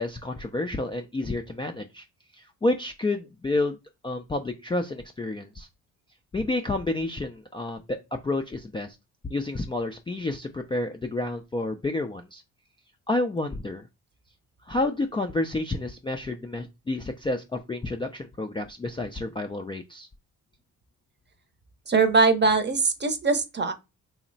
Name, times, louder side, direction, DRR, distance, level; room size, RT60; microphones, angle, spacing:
voice 1, 0.0-2.0 2.4-3.8 4.0-5.7 6.3-9.0 9.3-12.4 13.1-13.9 14.7-20.1, left 2 dB, 15° left, 0.3 m, -30 dB
voice 2, 21.9-23.7, right 4 dB, 30° right, 0.7 m, -21 dB
2.9 x 2.1 x 3.9 m
supercardioid pair, 65°, 36 cm